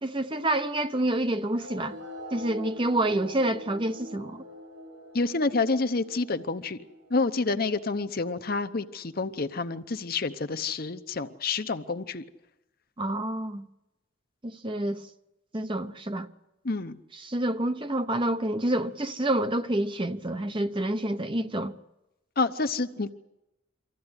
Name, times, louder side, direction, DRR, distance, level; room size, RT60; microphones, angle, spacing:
voice 1, 0.0-2.0 2.3-4.4 13.0-13.7 14.4-15.0 15.5-16.3 17.1-21.7, right 1 dB, 25° right, 0.8 m, -28 dB
sound 1, 1.5-8.5, equal, 75° right, 6.0 m, -44 dB
voice 2, 5.1-6.8 7.1-12.2 16.6-17.0 22.4-23.1, left 3 dB, 45° left, 0.8 m, -28 dB
24.5 x 15.0 x 9.7 m
head